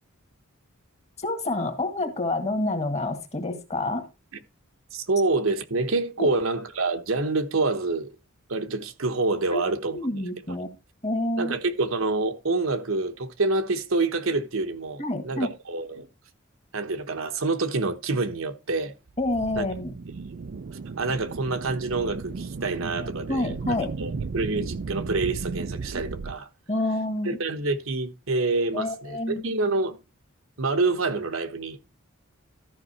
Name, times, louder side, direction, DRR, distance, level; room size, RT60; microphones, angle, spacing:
voice 1, 1.2-4.1 6.2-6.3 9.5-9.6 9.9-10.7 11.0-11.6 15.0-15.5 19.2-19.9 23.3-23.9 26.7-27.4 28.7-29.5, left 2 dB, 30° left, 1.9 m, -28 dB
voice 2, 4.9-8.1 8.5-10.0 11.4-16.1 16.7-18.9 19.6-19.7 21.0-23.5 24.0-26.5 27.2-29.2 29.4-30.0 30.6-31.8, right 3 dB, 70° right, 1.0 m, -27 dB
sound 1, 19.1-26.4, right 4 dB, 50° right, 0.5 m, -35 dB
13.0 x 5.4 x 4.1 m
head